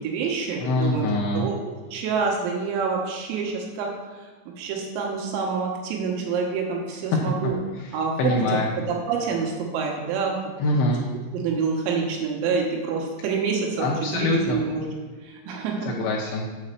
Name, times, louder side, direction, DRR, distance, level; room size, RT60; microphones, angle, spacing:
voice 1, 0.0-1.6 1.9-4.0 4.6-7.6 7.9-8.3 8.9-10.7 11.3-14.9 15.2-15.9, right 5 dB, 85° right, 0 dB, 3.9 m, -27 dB
voice 2, 0.6-1.5 7.1-7.2 7.8-7.9 8.2-8.7 10.6-11.1 13.8-14.6 15.9-16.5, left 2 dB, 80° left, -2 dB, 2.7 m, -24 dB
8.5 x 4.3 x 6.7 m, 1.5 s
omnidirectional pair, 6.0 m